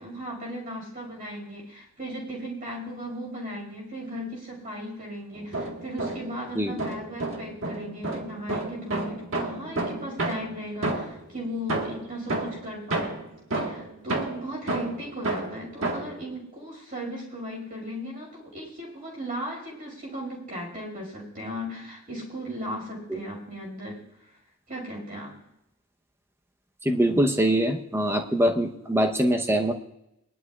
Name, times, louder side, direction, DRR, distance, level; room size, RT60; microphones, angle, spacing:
voice 1, 0.0-13.2 13.5-24.0 24.7-25.3, equal, 40° right, -2 dB, 5.4 m, -36 dB
sound 1, 5.3-6.4 6.8-11.3 11.7-16.2, right 2 dB, 65° right, 1.6 m, -31 dB
voice 2, 26.8-29.7, right 1 dB, 10° right, 4 dB, 0.9 m, -23 dB
22.5 x 11.5 x 2.4 m, 0.86 s
head